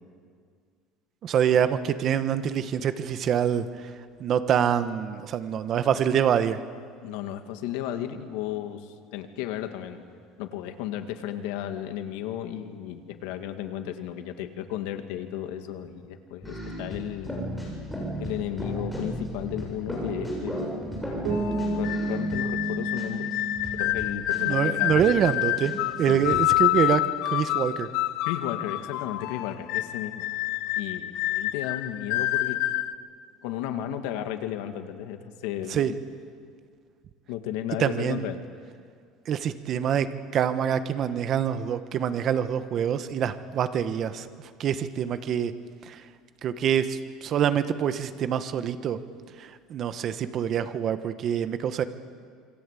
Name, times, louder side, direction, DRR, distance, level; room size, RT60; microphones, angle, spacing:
voice 1, 1.2-3.9 4.2-6.6 24.5-27.9 35.7-35.9 37.8-38.3 39.3-44.3 44.6-45.5 45.9-46.0 46.4-49.0 49.4-51.8, right 9 dB, 40° right, 11 dB, 1.2 m, -25 dB
voice 2, 7.0-10.0 10.4-17.4 18.2-21.0 21.7-23.3 23.7-25.1 26.1-26.4 28.2-30.2 30.8-32.6 33.4-36.0 37.3-38.4, left 11 dB, 85° left, 7 dB, 2.1 m, -34 dB
sound 1, 16.4-22.7 23.0-23.1 23.3-25.3 25.6-25.7 26.0-26.4, equal, ahead, 7.6 m, -34 dB
Bass guitar, 21.2-25.0, right 2 dB, 75° right, 4.7 m, -32 dB
sound 2, 21.3-32.9, left 16 dB, 65° left, 0.8 m, -28 dB
27.0 x 23.5 x 8.4 m, 2.1 s
cardioid pair, 155°, 0 cm